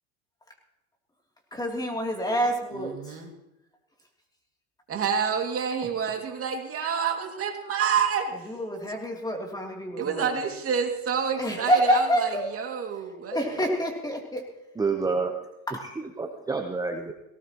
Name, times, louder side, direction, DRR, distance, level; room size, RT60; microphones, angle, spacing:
voice 1, 1.5-3.2 8.4-10.3 11.4-12.5 13.3-14.5 15.7-15.9, equal, 10° left, 1 dB, 3.0 m, -27 dB
voice 2, 2.8-3.3 4.9-8.5 10.0-13.7, right 7 dB, 30° right, 3 dB, 2.4 m, -28 dB
voice 3, 14.8-15.5 15.8-17.1, right 4 dB, 10° right, 4 dB, 0.8 m, -29 dB
18.5 x 18.0 x 3.0 m, 0.92 s
supercardioid pair, 125°, 44 cm